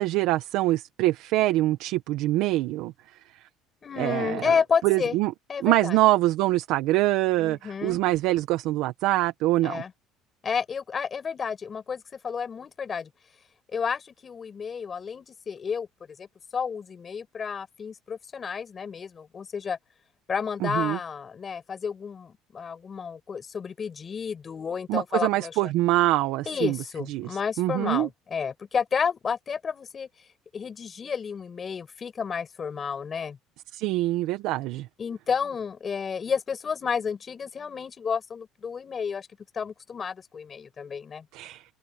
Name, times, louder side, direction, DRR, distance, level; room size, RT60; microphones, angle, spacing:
voice 1, 0.0-2.9 4.0-4.5 4.8-5.3 5.6-9.8 20.6-21.0 24.9-26.8 27.1-28.1 33.7-34.9 41.3-41.6, right 17 dB, 75° right, 1.3 m, -24 dB
voice 2, 3.8-5.2 5.5-6.0 7.4-8.0 9.6-9.9 10.4-13.1 13.7-15.9 16.2-16.3 16.5-19.8 20.3-25.7 26.5-30.1 30.5-33.4 35.0-39.3 39.5-41.2, left 6 dB, 35° left, 5.6 m, -31 dB
open air
cardioid pair, 110°, 0 cm